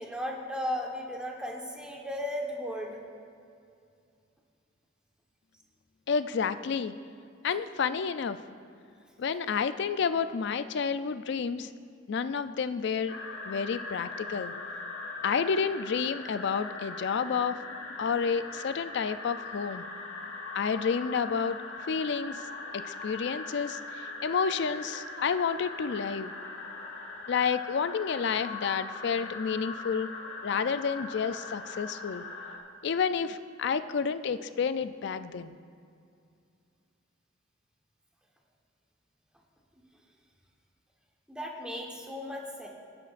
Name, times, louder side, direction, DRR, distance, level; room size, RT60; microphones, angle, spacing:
voice 1, 0.0-3.0 41.3-42.7, left 1 dB, 5° right, -1 dB, 1.2 m, -35 dB
voice 2, 6.1-6.9 7.4-8.4 9.2-11.7 12.1-13.1 13.5-14.5 15.2-17.6 18.0-19.8 20.5-21.6 21.9-22.4 22.7-23.8 24.2-26.3 27.3-30.1 30.4-32.3 32.8-35.6, left 6 dB, 60° left, 12 dB, 0.4 m, -30 dB
sound 1, 13.1-32.6, left 3 dB, 85° left, 1.4 m, -41 dB
18.5 x 9.6 x 2.5 m, 2.4 s
head